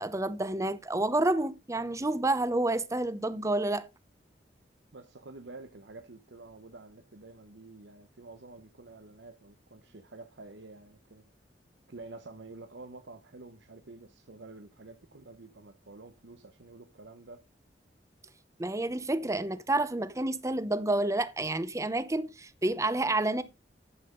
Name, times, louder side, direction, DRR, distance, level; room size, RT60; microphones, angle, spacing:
voice 1, 0.0-3.9 18.6-23.4, right 2 dB, 20° right, 0.8 m, -29 dB
voice 2, 4.9-11.2 11.9-17.4, right 3 dB, 85° right, 1.0 m, -49 dB
11.0 x 7.5 x 3.8 m
head